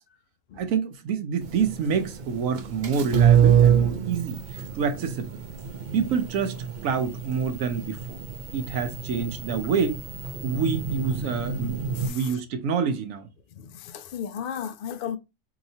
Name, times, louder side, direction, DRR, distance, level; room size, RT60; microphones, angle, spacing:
voice 1, 0.6-5.4 5.9-8.2 8.5-10.0 10.4-11.7 12.1-13.3, right 6 dB, 90° right, 1.1 m, -27 dB
sound 1, 1.4-12.1, right 8 dB, 55° right, 0.5 m, -26 dB
voice 2, 12.0-12.4 13.6-15.2, left 8 dB, 60° left, 0.6 m, -34 dB
4.8 x 2.9 x 2.7 m
omnidirectional pair, 1.4 m